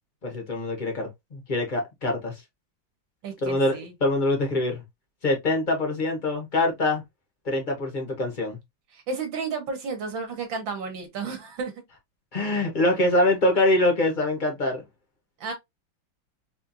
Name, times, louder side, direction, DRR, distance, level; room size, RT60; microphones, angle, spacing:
voice 1, 0.2-2.4 3.4-4.8 5.2-7.0 7.4-8.6 12.3-14.8, left 2 dB, 35° left, 0.8 m, -24 dB
voice 2, 3.2-3.9 8.9-11.7 15.4-15.5, right 4 dB, 65° right, 1.7 m, -32 dB
4.3 x 2.5 x 2.5 m
omnidirectional pair, 2.4 m